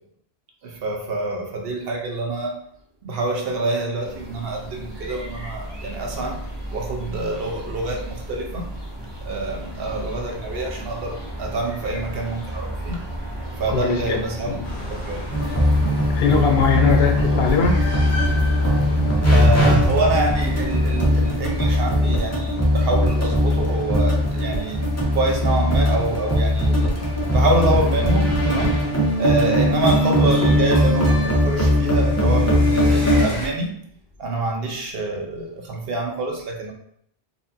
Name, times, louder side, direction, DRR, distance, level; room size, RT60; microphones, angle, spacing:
voice 1, 0.6-2.6 3.0-6.4 6.7-8.7 9.2-13.0 13.6-14.6 14.9-15.2 19.3-26.9 27.3-28.7 29.2-33.7 34.2-36.7, right 2 dB, 65° right, 1 dB, 1.0 m, -26 dB
sound 1, 4.0-21.8, right 1 dB, 25° right, 0.8 m, -33 dB
voice 2, 13.7-14.6 16.1-17.8, left 6 dB, 70° left, 4 dB, 0.8 m, -21 dB
sound 2, 14.6-33.5, equal, 40° left, 1.1 m, -36 dB
sound 3, 15.3-33.2, left 1 dB, 20° left, 0.6 m, -19 dB
4.3 x 2.7 x 2.7 m, 0.69 s
omnidirectional pair, 1.1 m